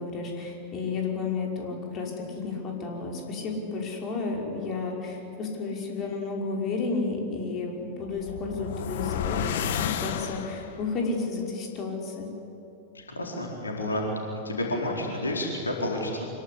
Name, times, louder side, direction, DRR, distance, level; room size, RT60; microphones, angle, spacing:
voice 1, 0.0-12.3, left 4 dB, 30° left, 0 dB, 5.4 m, -32 dB
sound 1, 8.0-10.9, left 8 dB, 55° left, 1.5 m, -31 dB
voice 2, 13.1-14.0 14.3-16.3, left 1 dB, 75° left, -1 dB, 4.3 m, -30 dB
26.0 x 22.0 x 8.6 m, 2.7 s
figure-of-eight pair, 90°, 0 cm